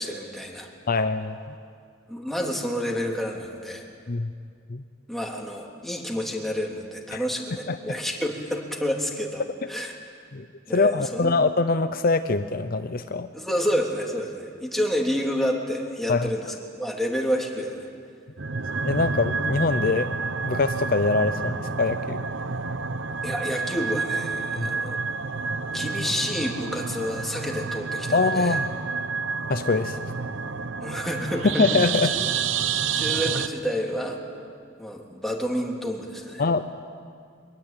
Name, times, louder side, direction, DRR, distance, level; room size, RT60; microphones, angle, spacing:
voice 1, 0.0-0.7 2.1-3.8 5.1-9.4 9.7-9.9 10.7-11.4 13.3-17.9 23.2-25.0 25.7-28.6 30.8-31.8 32.1-32.2 32.9-34.2 34.8-36.4, equal, ahead, 0 dB, 3.1 m, -29 dB
voice 2, 0.9-1.5 4.1-4.3 4.7-4.8 7.1-7.2 7.7-8.0 10.3-10.5 10.7-13.3 16.1-16.3 18.8-20.2 20.4-22.2 24.6-24.7 28.1-28.6 29.5-30.0 31.6-32.2 36.4-36.6, left 3 dB, 50° left, 10 dB, 0.7 m, -23 dB
sound 1, 18.4-33.5, right 5 dB, 75° right, 0.9 m, -29 dB
24.0 x 21.5 x 9.1 m, 2.2 s
head